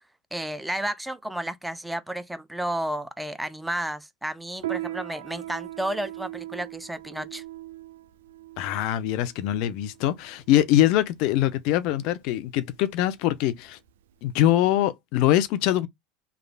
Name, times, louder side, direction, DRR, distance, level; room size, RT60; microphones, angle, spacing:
voice 1, 0.3-7.4, right 1 dB, 5° right, 0.4 m, -32 dB
Piano, 4.6-14.6, right 15 dB, 80° right, 0.4 m, -40 dB
voice 2, 8.6-13.8 14.2-15.9, left 13 dB, 65° left, 0.5 m, -23 dB
3.1 x 2.4 x 2.2 m
hypercardioid pair, 90°, 0 cm